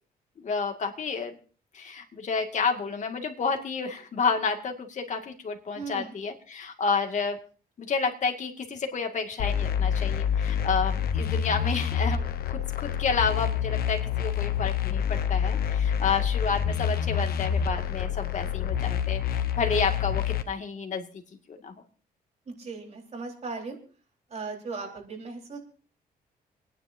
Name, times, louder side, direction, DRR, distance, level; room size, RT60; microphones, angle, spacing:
voice 1, 0.4-1.4 1.7-7.4 7.8-21.1 21.5-21.7, left 5 dB, 50° left, 5 dB, 2.2 m, -30 dB
voice 2, 5.7-6.1 22.5-23.8 24.3-25.6, right 4 dB, 45° right, 0 dB, 4.4 m, -37 dB
sound 1, 9.4-20.4, left 8 dB, 75° left, 1.1 m, -27 dB
29.5 x 10.0 x 2.7 m, 0.40 s
cardioid pair, 105°, 16 cm